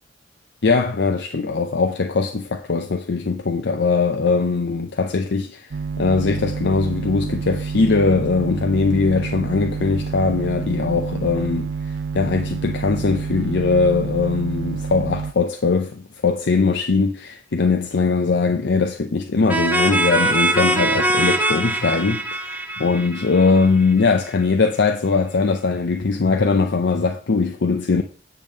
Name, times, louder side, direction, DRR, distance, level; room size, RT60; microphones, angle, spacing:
voice 1, 0.6-5.7 6.0-11.7 12.1-28.0, left 4 dB, 65° left, 0.6 m, -20 dB
sound 1, 5.7-15.3, right 5 dB, 80° right, 0.4 m, -28 dB
sound 2, 19.5-24.1, right 1 dB, 10° right, 0.8 m, -22 dB
8.9 x 3.5 x 6.4 m
head